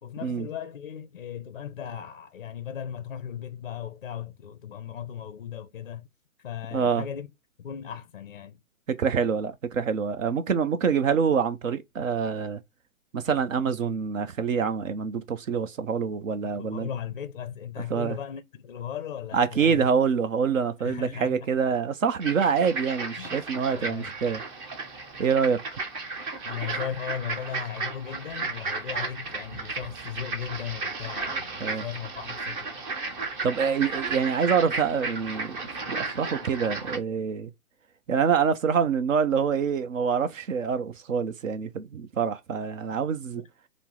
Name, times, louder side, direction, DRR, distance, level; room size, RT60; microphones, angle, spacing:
voice 1, 0.0-6.1 6.4-7.3 7.6-8.6 16.6-19.9 20.8-21.4 23.2-23.4 23.7-24.1 26.4-32.7 43.4-43.5, left 9 dB, 40° left, 0.4 m, -37 dB
voice 2, 6.7-7.0 8.9-12.6 13.1-16.9 17.9-18.2 19.3-24.4 25.2-25.8 31.6-31.8 33.4-35.6 35.9-37.5 38.1-43.4, right 6 dB, 65° right, 0.7 m, -26 dB
sound 1, 22.2-37.0, right 3 dB, 35° right, 1.2 m, -34 dB
5.1 x 2.0 x 4.7 m
hypercardioid pair, 145°, 43 cm